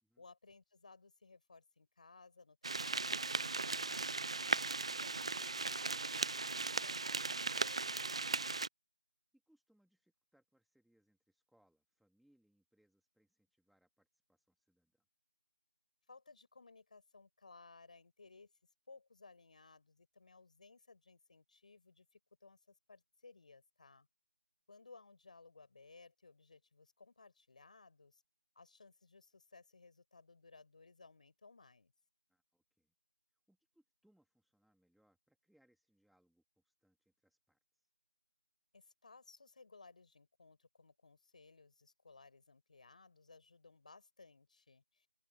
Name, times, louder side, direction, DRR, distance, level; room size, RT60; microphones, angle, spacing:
voice 1, 0.2-8.4 16.1-18.5 18.9-24.1 24.7-28.2 28.6-31.9 38.7-45.1, left 4 dB, 40° left, 5.2 m, -61 dB
sound 1, 2.6-8.7, right 3 dB, 30° right, 0.4 m, -37 dB
voice 2, 9.3-15.0 32.3-32.9 33.3-37.9, right 1 dB, ahead, 1.8 m, -76 dB
open air
figure-of-eight pair, 170°, 6 cm